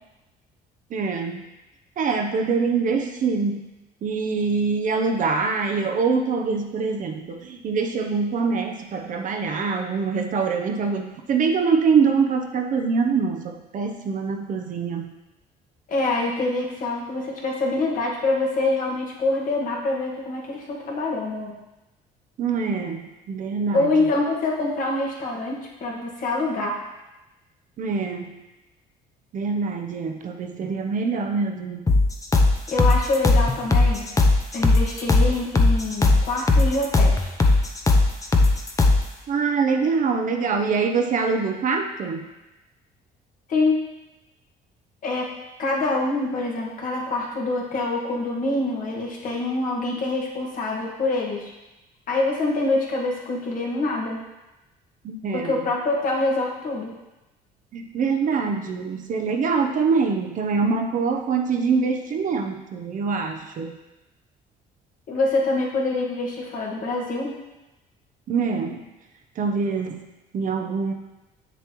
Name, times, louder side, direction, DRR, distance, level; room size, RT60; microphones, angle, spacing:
voice 1, 0.9-1.4 2.0-3.6 4.0-15.1 22.4-24.1 27.8-28.3 29.3-31.9 39.3-42.2 55.0-55.6 57.7-63.7 68.3-68.8 69.4-70.0 70.3-70.9, right 5 dB, 50° right, 4 dB, 0.8 m, -24 dB
voice 2, 15.9-21.6 23.7-26.8 32.7-34.1 34.5-37.3 43.5-43.9 45.0-45.3 45.6-51.5 52.1-54.2 55.3-56.9 65.1-67.4, left 2 dB, 55° left, -2 dB, 1.8 m, -25 dB
sound 1, 31.9-39.1, left 2 dB, 20° left, 0.8 m, -18 dB
7.3 x 6.9 x 3.1 m, 1.0 s
cardioid pair, 110°, 17 cm